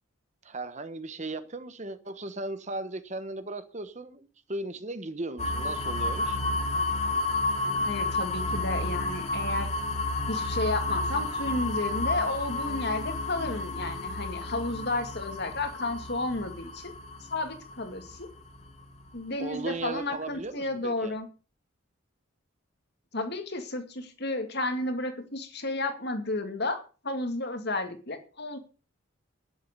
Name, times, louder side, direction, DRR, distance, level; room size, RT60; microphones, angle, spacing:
voice 1, 0.4-6.4 19.4-21.2, right 2 dB, 35° right, 1.1 m, -37 dB
sound 1, 5.4-19.2, left 2 dB, 30° left, 2.6 m, -31 dB
voice 2, 7.6-9.7 10.3-16.9 17.3-18.3 19.1-21.3 23.1-28.6, left 2 dB, 50° left, 2.3 m, -32 dB
11.5 x 10.5 x 6.8 m
head